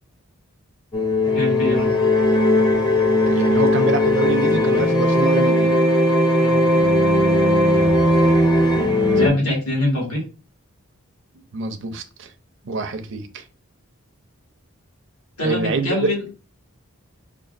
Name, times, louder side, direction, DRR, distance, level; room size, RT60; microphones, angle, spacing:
sound 1, 0.9-9.3, left 1 dB, 20° left, 0.5 m, -17 dB
voice 1, 1.3-1.9 6.4-6.6 9.2-10.2 15.4-16.2, left 1 dB, 80° left, 2.0 m, -23 dB
voice 2, 3.3-5.8 7.6-8.0 9.2-9.4 11.5-12.3 12.6-13.4 15.4-16.1, right 3 dB, 55° right, 0.4 m, -26 dB
5.2 x 2.5 x 2.4 m
head